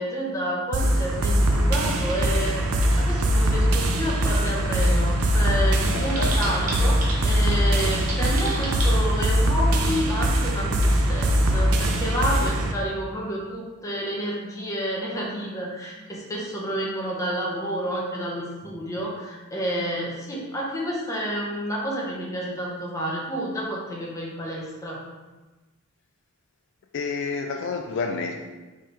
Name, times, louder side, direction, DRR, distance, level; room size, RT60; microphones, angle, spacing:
voice 1, 0.0-25.0, equal, 15° left, -4 dB, 0.8 m, -30 dB
sound 1, 0.7-12.7, equal, 85° right, 0.5 m, -22 dB
voice 2, 5.9-6.4 26.9-28.5, left 4 dB, 55° left, 3 dB, 0.3 m, -29 dB
Typing, 6.1-8.9, right 2 dB, 35° right, 0.9 m, -33 dB
4.3 x 3.6 x 3.3 m, 1.2 s
head